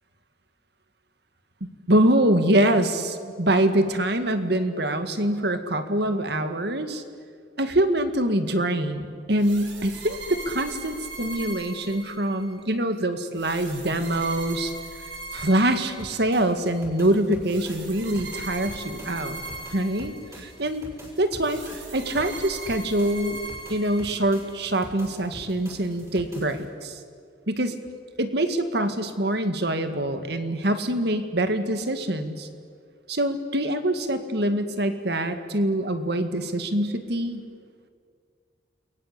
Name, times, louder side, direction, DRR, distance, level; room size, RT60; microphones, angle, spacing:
voice 1, 1.6-7.0 7.6-14.7 15.3-19.4 19.7-20.9 21.2-21.6 21.9-23.4 23.7-27.0 27.5-27.8 28.2-32.5 33.1-37.5, right 1 dB, 60° right, 8 dB, 2.0 m, -24 dB
sound 1, 9.4-12.5 13.3-16.4 17.4-20.6 21.4-24.5, right 3 dB, 85° right, 5.2 m, -40 dB
sound 2, 16.0-26.6, equal, 15° right, 6.6 m, -45 dB
29.0 x 22.5 x 8.3 m, 2.1 s
head